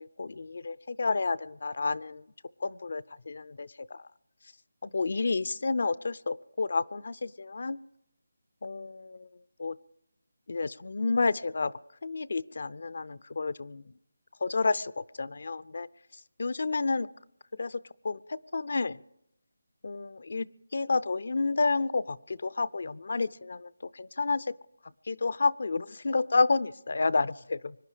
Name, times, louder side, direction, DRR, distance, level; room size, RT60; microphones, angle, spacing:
voice 1, 0.0-2.2 2.6-4.0 4.8-7.8 8.6-9.3 9.6-9.8 10.5-11.7 12.0-13.8 14.4-15.9 16.4-17.1 17.5-19.0 19.8-20.5 20.7-24.5 25.1-27.7, left 3 dB, 60° left, 18 dB, 0.5 m, -30 dB
24.5 x 10.5 x 5.0 m, 0.80 s
figure-of-eight pair, 160°, 0 cm